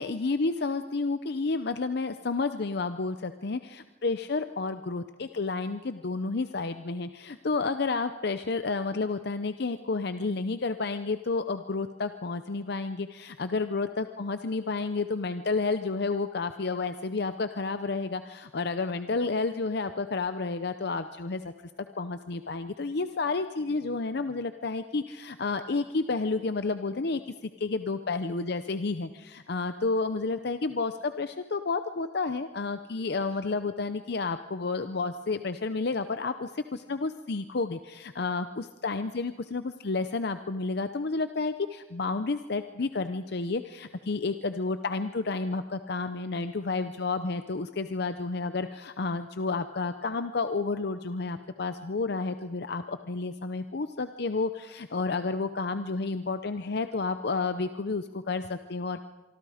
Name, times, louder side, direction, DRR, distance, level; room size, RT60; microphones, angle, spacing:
voice 1, 0.0-21.5 22.0-59.0, left 3 dB, 60° left, 10 dB, 0.7 m, -31 dB
25.0 x 24.5 x 5.0 m, 1.2 s
head